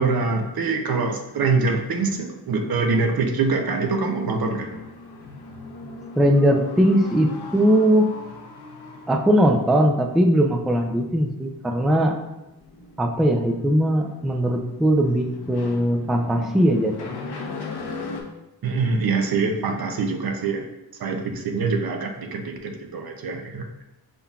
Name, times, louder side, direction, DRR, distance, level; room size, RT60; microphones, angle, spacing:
voice 1, 0.0-4.7 18.6-20.7 21.0-23.7, right 4 dB, 70° right, 4 dB, 0.7 m, -24 dB
sound 1, 1.8-18.2, left 3 dB, 90° left, 0.8 m, -39 dB
voice 2, 6.2-8.1 9.1-12.1 13.0-17.1, equal, ahead, 2 dB, 0.3 m, -20 dB
5.4 x 3.8 x 2.3 m, 0.93 s
wide cardioid pair, 110°, 38 cm